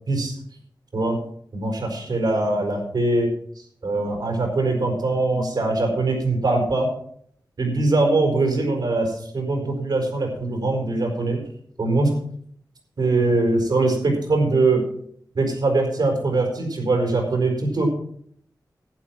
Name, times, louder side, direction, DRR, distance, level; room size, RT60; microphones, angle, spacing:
voice 1, 1.5-3.3 3.6-6.9 7.6-11.4 11.8-12.1 13.0-14.8 15.3-17.9, right 2 dB, 80° right, 1 dB, 4.9 m, -22 dB
11.5 x 9.4 x 6.0 m, 0.64 s
wide cardioid pair, 65°, 7 cm